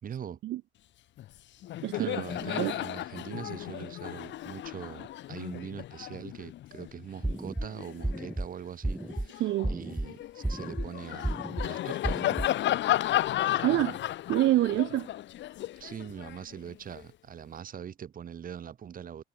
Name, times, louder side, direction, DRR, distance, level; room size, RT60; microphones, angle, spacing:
voice 1, 0.0-0.4 1.9-11.3 11.6-12.2 15.8-19.2, right 8 dB, 45° right, 3.4 m, -42 dB
Laughter, 1.2-1.4 1.6-8.3 8.9-17.0, left 13 dB, 65° left, 1.9 m, -34 dB
sound 1, 7.2-7.7 8.0-8.5 8.8-9.3 9.6-10.1 10.4-10.9 11.2-11.7 12.0-12.5, right 1 dB, 5° right, 0.5 m, -32 dB
voice 2, 13.6-14.0 14.3-15.1, right 15 dB, 65° right, 0.8 m, -26 dB
cardioid pair, 120°, 20 cm